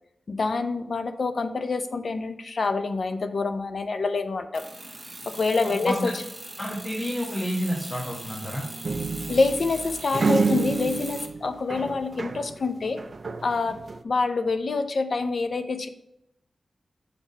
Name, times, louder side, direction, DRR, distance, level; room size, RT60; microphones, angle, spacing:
voice 1, 0.3-4.6 5.3-6.1 9.3-13.0 13.4-15.9, left 3 dB, 65° left, 9 dB, 0.5 m, -26 dB
sound 1, 4.5-11.3, right 2 dB, 20° right, 1.0 m, -40 dB
voice 2, 5.6-6.1 6.6-8.6, equal, 30° left, -3 dB, 1.2 m, -29 dB
sound 2, 8.8-12.6 12.9-14.0, right 4 dB, 50° right, 0.4 m, -28 dB
6.9 x 4.0 x 4.1 m, 0.81 s
wide cardioid pair, 120°, 0 cm